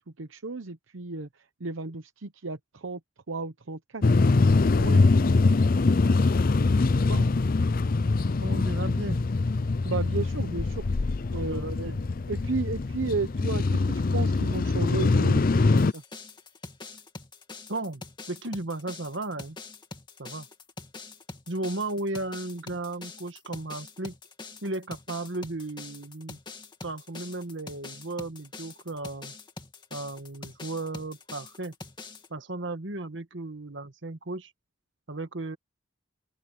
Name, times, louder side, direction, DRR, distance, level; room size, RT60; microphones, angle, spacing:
voice 1, 0.2-1.3 1.6-3.0 3.3-4.0 9.8-10.8 11.3-11.9 12.3-16.0, right 3 dB, 85° right, 0.9 m, -33 dB
sound 1, 4.0-15.9, left 3 dB, 45° left, 0.5 m, -23 dB
voice 2, 4.8-5.1 7.0-7.3 8.4-9.2 11.3-12.0 17.7-18.0 18.3-19.6 20.2-20.5 21.5-24.1 24.6-26.4 26.8-29.3 29.9-31.7 32.3-34.5 35.1-35.6, right 2 dB, 70° right, 1.7 m, -35 dB
sound 2, 15.8-32.3, left 3 dB, 25° left, 2.3 m, -44 dB
open air
head